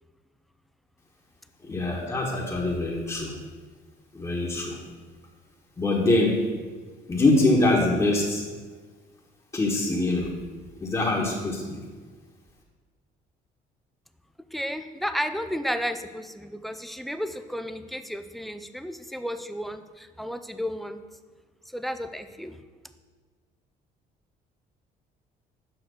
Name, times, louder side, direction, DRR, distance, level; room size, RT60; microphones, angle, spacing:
voice 1, 1.6-3.4 4.1-4.8 5.8-6.4 7.1-8.4 9.5-10.3 10.8-11.8, left 2 dB, 20° left, -5 dB, 1.4 m, -24 dB
voice 2, 14.5-21.0 21.7-22.6, equal, ahead, 9 dB, 0.5 m, -33 dB
7.9 x 5.9 x 6.4 m, 1.4 s
cardioid pair, 110°, 17 cm